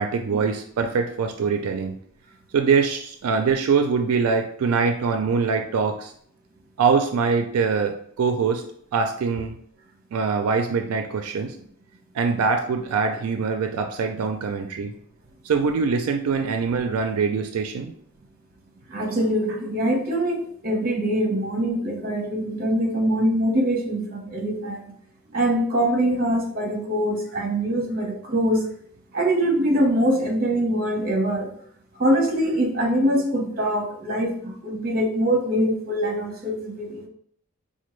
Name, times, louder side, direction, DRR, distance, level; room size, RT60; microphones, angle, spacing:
voice 1, 0.0-1.9 2.5-6.1 6.8-8.6 8.9-9.6 10.1-11.6 12.1-14.9 15.4-17.9, right 5 dB, 85° right, 6 dB, 0.4 m, -23 dB
voice 2, 18.9-24.8 25.3-28.7 29.1-31.5 32.0-37.1, right 1 dB, 40° right, 1 dB, 0.8 m, -23 dB
4.3 x 2.2 x 3.1 m, 0.63 s
head